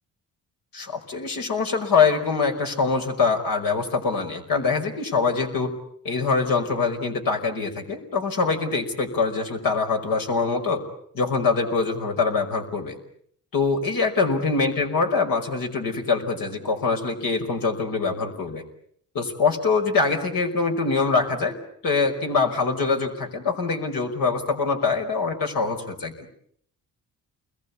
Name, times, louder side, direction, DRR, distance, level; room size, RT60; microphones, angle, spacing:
voice 1, 0.7-5.7 6.0-10.8 11.1-13.0 13.5-18.6 19.1-21.6 21.8-26.3, left 4 dB, 80° left, 4 dB, 5.4 m, -24 dB
29.0 x 22.0 x 8.5 m, 0.65 s
cardioid pair, 75°, 34 cm